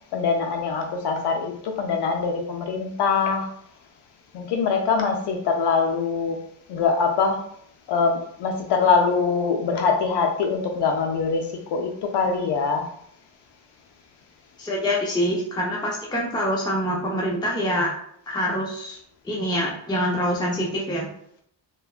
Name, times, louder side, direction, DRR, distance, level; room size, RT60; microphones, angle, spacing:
voice 1, 0.1-3.5 4.3-6.4 6.7-7.4 7.9-12.9, left 5 dB, 65° left, 3 dB, 0.5 m, -23 dB
voice 2, 14.6-17.9 18.3-19.0 19.2-21.1, equal, 10° left, -4 dB, 0.7 m, -25 dB
3.3 x 2.2 x 2.4 m, 0.67 s
cardioid pair, 75°, 44 cm